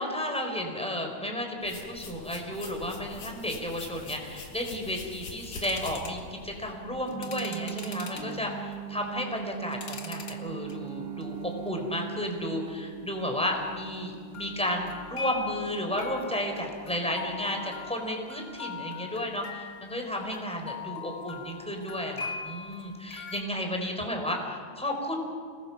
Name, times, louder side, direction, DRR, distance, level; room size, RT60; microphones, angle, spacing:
voice 1, 0.0-25.2, left 1 dB, ahead, 2 dB, 3.8 m, -33 dB
sound 1, 1.6-6.7, left 3 dB, 65° left, 4.7 m, -44 dB
sound 2, 5.6-6.2 7.0-8.4 9.0-10.4 10.7-11.2 11.7-11.8 14.3-23.4, left 5 dB, 40° left, 1.6 m, -42 dB
sound 3, 7.1-17.9, right 9 dB, 35° right, 1.6 m, -41 dB
29.5 x 20.0 x 6.0 m, 2.2 s
omnidirectional pair, 4.0 m